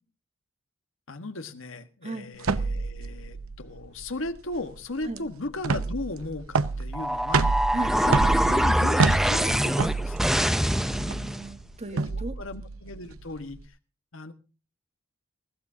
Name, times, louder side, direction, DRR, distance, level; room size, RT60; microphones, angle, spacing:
voice 1, 1.1-10.2 11.9-13.7 14.1-14.3, left 2 dB, 65° left, 1.5 m, -37 dB
sound 1, 2.4-13.6, right 4 dB, 80° right, 0.8 m, -29 dB
sound 2, 6.9-11.5, equal, ahead, 0.6 m, -24 dB
voice 2, 10.7-12.4, right 2 dB, 30° right, 1.5 m, -36 dB
20.5 x 15.5 x 2.8 m
head